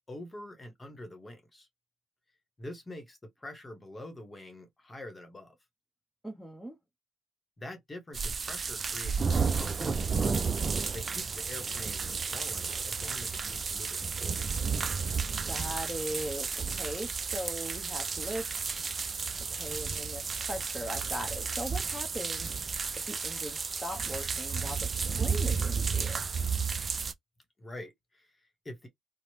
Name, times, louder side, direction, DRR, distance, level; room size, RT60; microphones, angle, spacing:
voice 1, 0.1-1.7 2.6-5.6 7.6-10.5 10.9-14.4 27.6-28.9, left 1 dB, 20° left, 0.9 m, -45 dB
voice 2, 6.2-6.8 15.4-18.9 19.5-22.8 23.1-26.2, equal, 5° right, 0.7 m, -39 dB
sound 1, 8.1-27.1, right 5 dB, 40° right, 0.3 m, -32 dB
2.9 x 2.0 x 3.0 m
cardioid pair, 90°, 0 cm